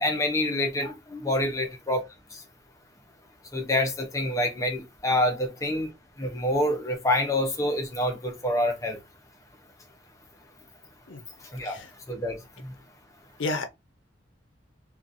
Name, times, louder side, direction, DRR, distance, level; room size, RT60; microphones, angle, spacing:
voice 1, 0.0-2.0 3.5-5.9 6.2-9.0 11.5-11.8 12.1-12.4, left 1 dB, 15° left, 0.6 m, -26 dB
voice 2, 11.1-11.2 11.6-11.9 13.4-13.7, left 2 dB, 75° left, 0.6 m, -30 dB
2.8 x 2.4 x 2.5 m
head